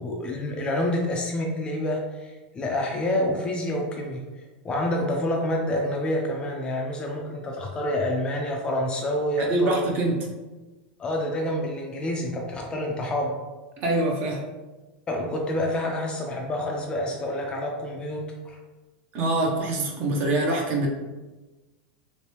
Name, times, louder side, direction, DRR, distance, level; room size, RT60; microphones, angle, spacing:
voice 1, 0.0-4.2 4.6-9.8 11.0-13.4 15.1-18.6, left 1 dB, 20° left, 1 dB, 0.4 m, -28 dB
voice 2, 9.4-10.2 13.8-14.4 19.1-20.9, right 2 dB, 35° right, 0 dB, 0.7 m, -24 dB
3.2 x 3.1 x 3.0 m, 1.2 s
supercardioid pair, 155°, 5 cm